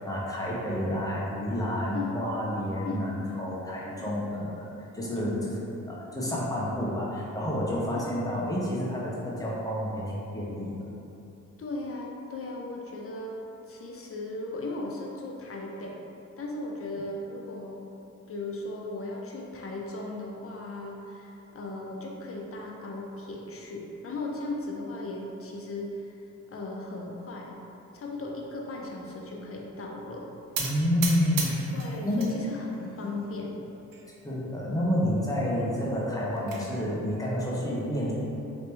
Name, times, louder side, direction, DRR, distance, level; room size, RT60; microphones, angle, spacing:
voice 1, 0.0-4.6 4.9-5.6 5.9-11.0 30.6-31.6 32.0-32.3 34.2-38.1, equal, 10° left, -6 dB, 0.9 m, -29 dB
voice 2, 7.9-8.5 11.6-13.3 13.7-16.0 16.4-17.9 18.3-26.0 26.5-27.5 27.9-30.3 31.7-33.6 36.5-36.7, left 2 dB, 40° left, -1 dB, 0.7 m, -37 dB
sound 1, 30.5-32.3 32.7-33.3 33.9-34.0 34.3-34.4 34.8-34.9 36.0-36.6, right 4 dB, 70° right, 0.7 m, -35 dB
3.0 x 2.9 x 3.3 m, 2.9 s
supercardioid pair, 55°, 34 cm